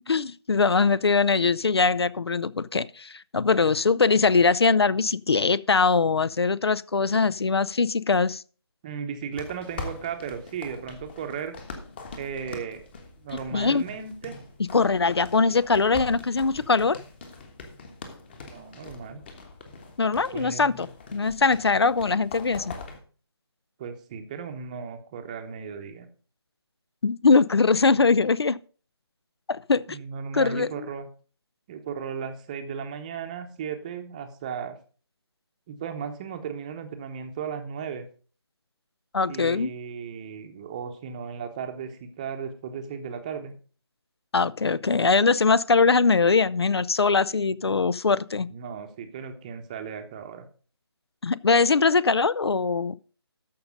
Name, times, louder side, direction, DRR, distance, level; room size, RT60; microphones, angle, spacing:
voice 1, 0.1-8.4 13.5-13.8 14.7-17.0 20.0-22.7 27.0-28.6 29.5-30.0 30.3-30.9 39.1-39.7 44.3-48.5 51.2-53.0, left 4 dB, 70° left, 0.5 m, -22 dB
voice 2, 8.8-11.6 12.2-12.8 13.2-14.3 18.5-19.2 20.3-20.9 23.8-26.1 29.9-31.1 31.7-34.8 35.7-38.1 39.2-43.5 48.5-50.5, right 7 dB, 15° right, 0.9 m, -36 dB
sound 1, 9.3-23.0, left 3 dB, 25° left, 1.3 m, -42 dB
13.5 x 5.3 x 5.1 m
figure-of-eight pair, 160°, 14 cm